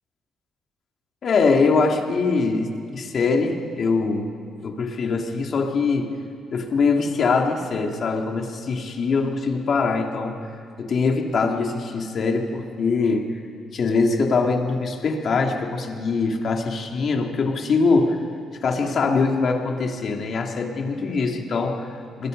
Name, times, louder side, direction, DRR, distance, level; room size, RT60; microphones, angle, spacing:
voice 1, 1.2-4.3 4.6-6.1 6.5-10.4 10.8-13.4 13.7-18.2 18.6-22.3, left 4 dB, 55° left, 2 dB, 3.0 m, -23 dB
28.5 x 21.5 x 5.5 m, 2.4 s
cardioid pair, 90°, 0 cm